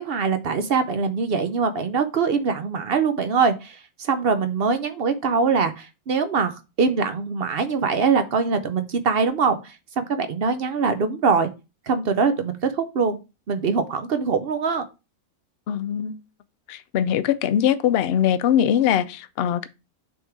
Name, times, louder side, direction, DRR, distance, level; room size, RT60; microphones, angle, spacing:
voice 1, 0.0-11.5 11.9-13.2 13.5-14.8, right 5 dB, 55° right, 0.7 m, -23 dB
voice 2, 15.7-16.2 16.7-19.7, left 9 dB, 65° left, 0.6 m, -22 dB
6.2 x 3.7 x 4.6 m
omnidirectional pair, 1.6 m